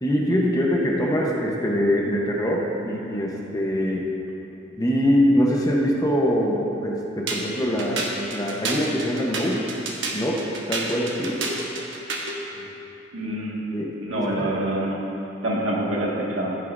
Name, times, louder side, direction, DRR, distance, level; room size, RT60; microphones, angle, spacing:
voice 1, 0.0-4.0 4.8-8.0 8.3-9.6 10.1-10.4 10.7-11.4 13.7-14.6, equal, 20° left, -2 dB, 0.9 m, -23 dB
sound 1, 7.3-12.4, right 2 dB, 70° right, 1.2 m, -30 dB
voice 2, 13.1-13.6 14.0-15.0 15.4-16.6, right 1 dB, 85° right, -4 dB, 1.8 m, -26 dB
14.5 x 9.2 x 2.6 m, 2.9 s
head